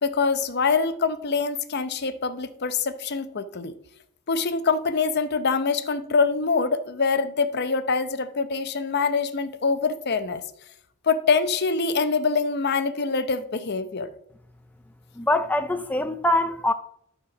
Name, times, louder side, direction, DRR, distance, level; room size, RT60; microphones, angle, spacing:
voice 1, 0.0-3.8 4.3-10.4 11.0-14.1, left 4 dB, 50° left, 0.7 m, -24 dB
voice 2, 15.2-16.7, left 1 dB, 10° left, 0.4 m, -23 dB
12.5 x 4.4 x 5.9 m
head